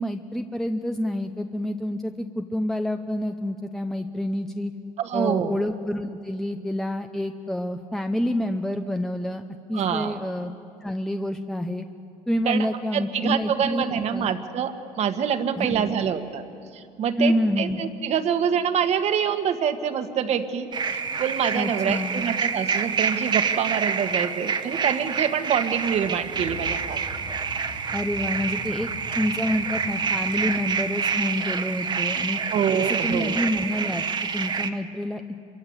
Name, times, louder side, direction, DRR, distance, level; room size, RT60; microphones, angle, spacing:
voice 1, 0.0-4.7 5.1-9.4 9.7-10.5 10.8-11.9 12.3-14.3 15.6-15.9 17.2-17.8 21.5-22.2 27.9-28.9 29.2-32.4 32.7-34.0 34.3-35.2, left 1 dB, 5° left, 6 dB, 0.8 m, -28 dB
voice 2, 5.0-5.6 9.7-10.2 12.4-12.6 12.9-16.4 16.7-27.0 32.5-33.4, right 8 dB, 50° right, 8 dB, 1.7 m, -26 dB
sound 1, 20.7-34.7, right 6 dB, 35° right, 1.3 m, -27 dB
sound 2, 25.7-30.7, left 2 dB, 75° left, 7.1 m, -42 dB
26.5 x 23.5 x 8.2 m, 2.5 s
cardioid pair, 120°, 14 cm